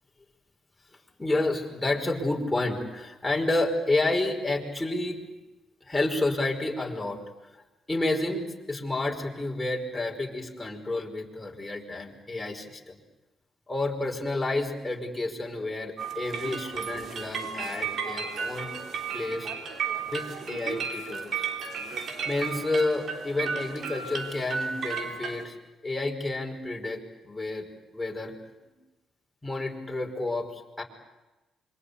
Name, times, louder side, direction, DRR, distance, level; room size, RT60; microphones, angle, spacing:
voice 1, 1.2-5.2 5.9-7.2 7.9-13.0 13.7-18.7 19.1-19.5 20.1-21.4 22.3-25.6 25.8-27.0 27.2-27.7 27.9-28.3 28.6-28.7 29.4-30.8, left 2 dB, 10° left, 1 dB, 5.3 m, -30 dB
sound 1, 16.0-25.4, right 6 dB, 60° right, 3.2 m, -34 dB
26.0 x 24.0 x 8.5 m, 1.1 s
cardioid pair, 90°, 0 cm